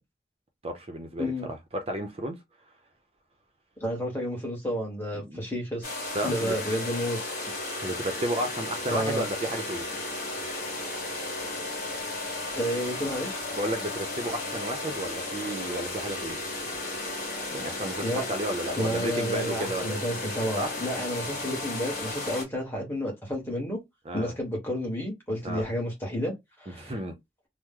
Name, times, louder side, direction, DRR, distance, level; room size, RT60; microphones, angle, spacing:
voice 1, 0.6-2.4 5.1-5.4 6.1-6.6 7.8-9.8 13.5-16.4 17.5-20.0 20.5-20.7 24.1-24.4 25.4-25.7 26.7-27.1, right 1 dB, 35° right, 0.6 m, -32 dB
voice 2, 3.8-5.8 6.2-7.2 8.9-9.2 12.6-13.4 18.0-18.3 18.8-23.8 24.1-26.9, equal, 10° left, 1.3 m, -31 dB
sound 1, 5.8-22.4, left 2 dB, 50° left, 1.4 m, -34 dB
3.1 x 2.0 x 3.6 m
head